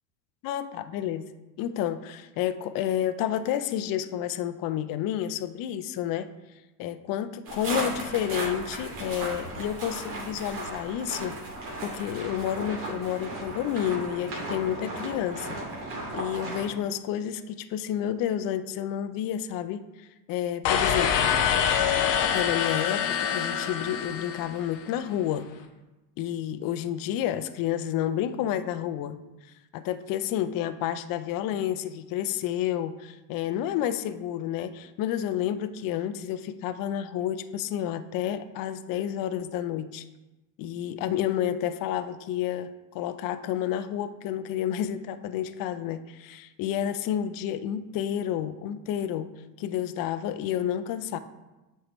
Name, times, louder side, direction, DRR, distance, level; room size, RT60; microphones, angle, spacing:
voice 1, 0.4-1.2 1.6-6.3 6.8-11.4 11.8-15.6 16.1-21.3 22.3-25.5 26.2-29.2 29.7-40.0 40.6-42.7 42.9-49.3 49.6-51.2, left 10 dB, 45° left, 11 dB, 0.5 m, -30 dB
sound 1, 7.4-16.6, right 2 dB, 65° right, 2.4 m, -35 dB
sound 2, 20.6-24.8, left 8 dB, 85° left, 0.9 m, -25 dB
7.9 x 5.6 x 3.1 m, 1.1 s
supercardioid pair, 90°, 49 cm